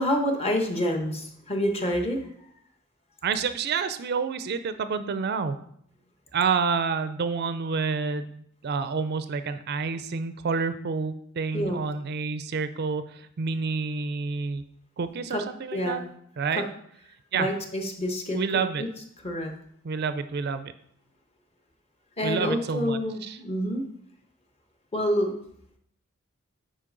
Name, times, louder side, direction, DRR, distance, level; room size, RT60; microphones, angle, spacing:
voice 1, 0.0-2.5 11.5-11.8 15.3-15.4 15.7-16.0 16.5-16.6 17.3-18.9 19.2-19.5 22.2-23.8 24.9-25.3, equal, 30° left, 4 dB, 1.0 m, -27 dB
voice 2, 3.2-5.6 6.3-14.6 15.0-16.0 16.4-16.6 17.3-17.5 18.3-18.8 19.8-20.7 22.2-23.4, right 5 dB, 50° right, 11 dB, 0.4 m, -29 dB
8.4 x 5.1 x 3.8 m, 0.69 s
head